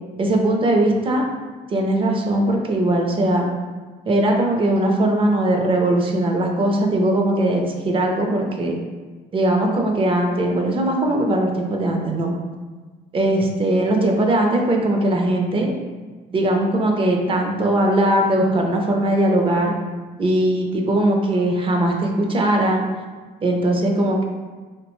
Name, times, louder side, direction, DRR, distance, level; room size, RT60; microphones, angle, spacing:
voice 1, 0.2-1.2 1.7-3.5 4.1-8.8 9.3-12.3 13.1-15.7 16.3-19.7 20.2-22.8 23.4-24.2, right 1 dB, 30° right, 1 dB, 0.5 m, -20 dB
3.2 x 2.1 x 3.0 m, 1.4 s
cardioid pair, 110°, 17 cm